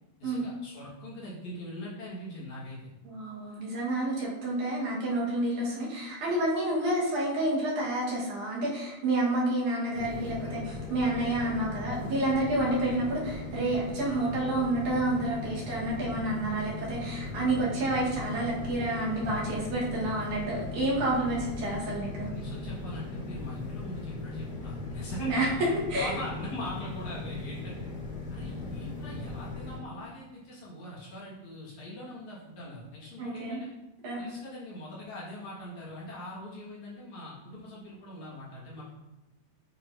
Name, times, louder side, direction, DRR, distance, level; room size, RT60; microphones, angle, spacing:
voice 1, 0.2-2.8 22.3-27.9 28.3-33.7 34.2-38.9, left 1 dB, 65° left, -7 dB, 2.9 m, -42 dB
voice 2, 3.1-22.3 25.2-25.5 25.9-26.2 33.2-33.6 34.0-34.2, right 2 dB, 70° right, -5 dB, 2.7 m, -29 dB
sound 1, 9.9-29.8, left 3 dB, 90° left, 0.8 m, -38 dB
8.4 x 4.4 x 2.6 m, 0.99 s
omnidirectional pair, 3.6 m